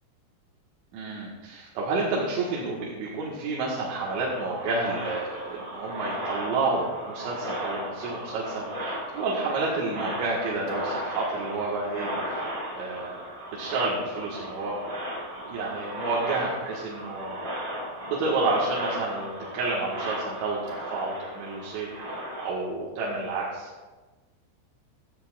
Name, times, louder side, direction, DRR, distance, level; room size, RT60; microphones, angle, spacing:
voice 1, 0.9-12.4 12.7-13.2 13.5-14.8 15.4-17.4 18.1-21.9 22.4-23.7, right 3 dB, 75° right, -6 dB, 3.8 m, -30 dB
sound 1, 4.0-22.5, right 1 dB, 40° right, 3.7 m, -36 dB
15.0 x 14.0 x 2.5 m, 1.3 s
omnidirectional pair, 5.4 m